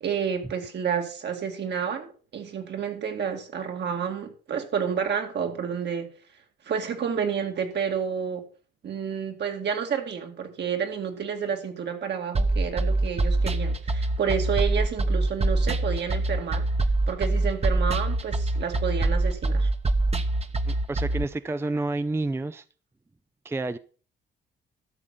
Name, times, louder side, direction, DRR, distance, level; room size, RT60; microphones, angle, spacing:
voice 1, 0.0-6.1 6.7-8.4 8.8-16.7 17.1-19.7, right 7 dB, 60° right, 2.3 m, -30 dB
sound 1, 12.3-21.2, right 2 dB, 30° right, 1.1 m, -24 dB
voice 2, 20.7-22.6 23.4-23.8, right 2 dB, 10° right, 0.5 m, -29 dB
12.5 x 6.4 x 5.7 m
cardioid pair, 90°, 20 cm